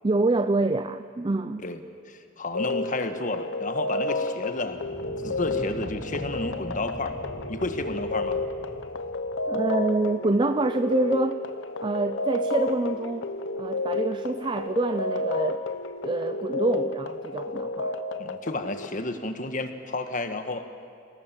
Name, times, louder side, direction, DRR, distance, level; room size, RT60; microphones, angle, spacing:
voice 1, 0.0-1.7 9.5-11.4 11.8-13.3 13.6-15.6 16.0-18.0, right 2 dB, 25° right, 11 dB, 0.5 m, -26 dB
voice 2, 2.1-4.8 5.2-7.1 7.5-8.4 18.2-20.6, left 2 dB, 40° left, 8 dB, 1.5 m, -31 dB
sound 1, 2.5-18.9, left 2 dB, 70° left, 0.9 m, -31 dB
sound 2, 4.5-9.4, equal, 5° right, 7.0 m, -41 dB
27.0 x 18.5 x 7.5 m, 2.6 s
head